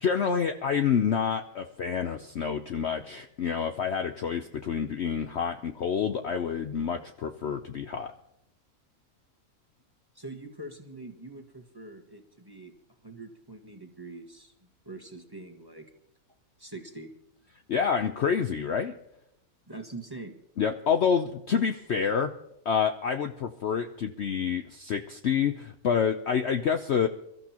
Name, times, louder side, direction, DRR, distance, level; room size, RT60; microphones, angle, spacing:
voice 1, 0.0-8.1 17.7-18.9 20.6-22.3 22.6-27.1, left 7 dB, 55° left, 6 dB, 0.8 m, -28 dB
voice 2, 10.1-12.7 13.0-14.5 14.8-15.9 16.6-17.1 19.7-20.4, right 2 dB, 15° right, 4 dB, 1.4 m, -43 dB
28.0 x 13.5 x 2.9 m, 0.82 s
omnidirectional pair, 1.6 m